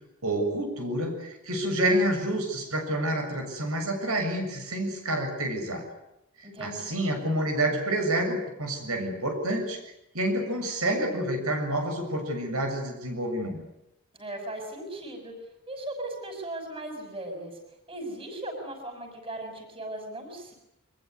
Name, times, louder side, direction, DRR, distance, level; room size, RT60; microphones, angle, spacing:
voice 1, 0.2-5.9 6.4-9.8 10.1-13.6, right 1 dB, 75° right, 5 dB, 7.1 m, -28 dB
voice 2, 6.4-7.0 14.1-15.4 15.7-17.6 17.9-20.5, right 1 dB, 25° right, 4 dB, 6.5 m, -38 dB
24.5 x 21.5 x 9.6 m, 0.87 s
head